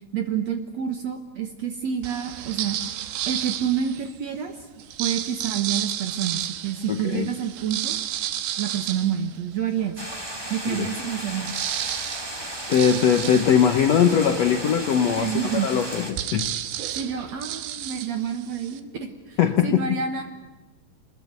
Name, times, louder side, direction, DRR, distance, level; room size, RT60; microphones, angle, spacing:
voice 1, 0.1-2.8 3.3-4.6 5.0-8.0 8.6-10.0 10.5-11.6 12.0-12.1 15.2-15.7 16.9-20.2, right 8 dB, 60° right, 6 dB, 1.9 m, -28 dB
sound 1, 2.0-4.2 4.8-10.0 10.5-10.6 10.8-18.8, right 11 dB, 80° right, 3.1 m, -32 dB
voice 2, 6.9-7.3 10.7-10.9 12.7-15.3 15.6-16.6 19.4-19.8, left 8 dB, 75° left, 6 dB, 1.5 m, -20 dB
sound 2, 10.0-16.1, equal, 10° right, 1.6 m, -35 dB
25.5 x 20.5 x 8.2 m, 1.3 s
omnidirectional pair, 4.6 m